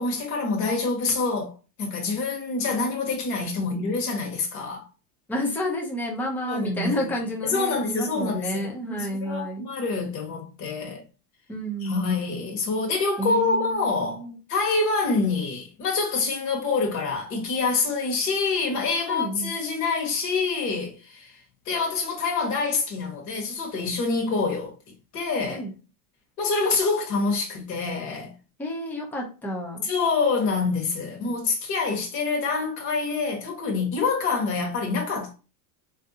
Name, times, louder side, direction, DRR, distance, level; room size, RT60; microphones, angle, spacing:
voice 1, 0.0-1.5 1.8-4.9 6.5-7.1 7.4-11.0 11.8-21.4 21.6-24.7 25.1-25.7 26.4-28.3 29.8-35.3, left 4 dB, 35° left, 1.1 m, -26 dB
voice 2, 5.3-9.7 11.5-12.1 13.2-14.4 19.1-19.5 25.5-25.7 28.6-29.9, equal, 5° left, 0.4 m, -30 dB
3.6 x 2.6 x 2.6 m
supercardioid pair, 155°, 46 cm